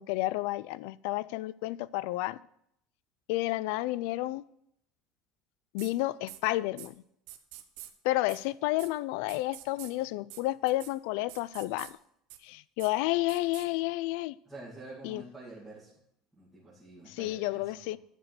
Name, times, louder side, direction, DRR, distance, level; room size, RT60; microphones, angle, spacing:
voice 1, 0.0-2.4 3.3-4.4 5.7-6.9 8.0-12.0 12.4-14.3 15.0-15.2 17.1-18.0, left 18 dB, 70° left, 0.3 m, -31 dB
sound 1, 5.8-5.9 6.3-6.4 6.8-6.9 7.3-7.9 8.3-8.4 8.8-8.9 9.3-9.9 10.3-10.4 10.7-10.9 11.3-11.9 12.3-12.4 12.8-12.9 13.3-13.7, right 14 dB, 70° right, 0.9 m, -46 dB
voice 2, 14.5-15.9 16.3-18.0, right 2 dB, 5° right, 2.3 m, -47 dB
10.5 x 5.2 x 6.7 m
cardioid pair, 180°, 0 cm